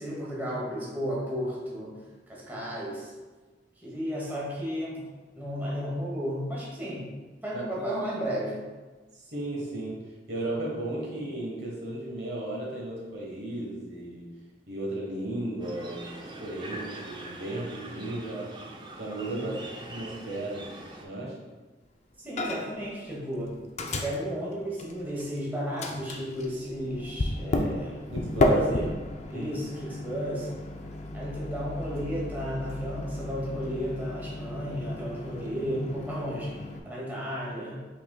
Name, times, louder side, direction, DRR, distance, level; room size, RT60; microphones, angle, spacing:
voice 1, 0.0-1.9 2.3-3.1 3.8-5.0 5.4-7.1 7.4-8.6 19.4-19.5 22.2-23.6 23.9-28.0 28.4-28.9 29.3-30.5 31.1-37.8, equal, 10° right, -6 dB, 1.0 m, -33 dB
voice 2, 7.5-7.9 9.1-14.4 14.7-16.1 16.4-18.6 19.0-19.6 19.8-21.5 28.1-28.6 29.3-29.5, right 1 dB, 70° right, -3 dB, 1.2 m, -35 dB
sound 1, 15.6-21.1, right 1 dB, 25° right, 0.5 m, -43 dB
Microwave oven, 22.4-22.9 23.1-25.4 25.8-36.8, left 1 dB, 40° left, 0.4 m, -32 dB
5.6 x 3.8 x 2.2 m, 1.3 s
head